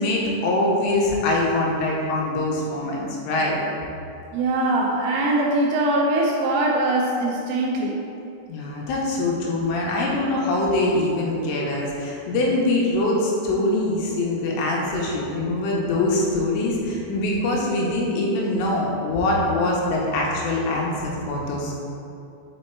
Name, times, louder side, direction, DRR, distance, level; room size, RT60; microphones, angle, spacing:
voice 1, 0.0-3.6 8.5-21.8, left 2 dB, 80° left, -3 dB, 3.4 m, -23 dB
voice 2, 4.3-8.0, right 2 dB, 85° right, -1 dB, 2.7 m, -22 dB
7.4 x 4.4 x 4.5 m, 2.7 s
omnidirectional pair, 5.9 m